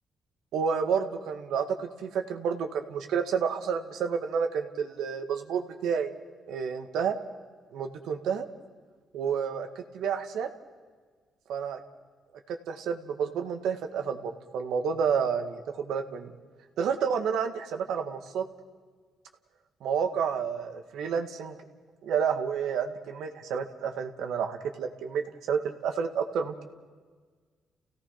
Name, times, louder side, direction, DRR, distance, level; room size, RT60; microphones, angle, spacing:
voice 1, 0.5-6.1 6.5-7.1 7.7-8.5 9.1-10.5 11.5-11.8 12.5-16.3 16.8-18.4 19.8-21.6 22.0-25.2 25.5-26.7, right 6 dB, 80° right, 6 dB, 1.9 m, -30 dB
29.5 x 17.0 x 5.9 m, 1.5 s
cardioid pair, 90°, 0 cm